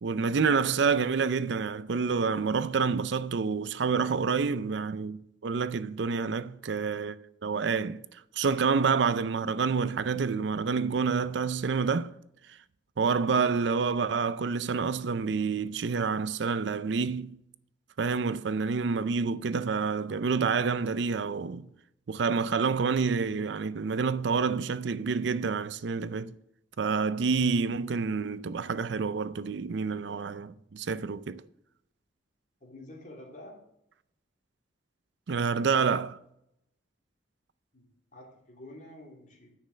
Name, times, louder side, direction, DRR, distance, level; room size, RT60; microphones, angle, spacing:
voice 1, 0.0-7.2 7.4-12.1 13.0-17.4 18.0-21.7 22.1-26.3 26.8-31.4 35.3-36.2, right 5 dB, 70° right, 0.5 m, -28 dB
voice 2, 32.6-33.6 37.7-39.6, left 1 dB, 45° left, 3.0 m, -48 dB
9.6 x 6.6 x 6.3 m
head